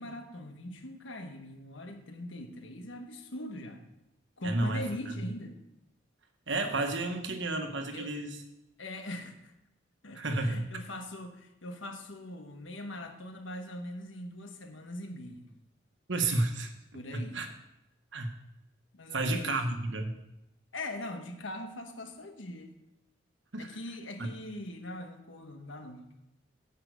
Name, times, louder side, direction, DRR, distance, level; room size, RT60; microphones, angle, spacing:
voice 1, 0.0-3.8 4.4-5.6 7.9-8.1 8.8-9.5 10.0-15.4 16.9-17.4 18.9-19.5 20.7-22.7 23.6-26.1, left 1 dB, 85° left, 6 dB, 1.4 m, -41 dB
voice 2, 4.4-4.8 6.5-8.4 10.1-10.7 16.1-16.7 17.1-17.5 18.1-18.3 19.1-20.2 23.5-23.8 24.2-24.3, right 2 dB, 70° right, 5 dB, 1.3 m, -31 dB
9.5 x 5.6 x 8.0 m, 0.89 s
head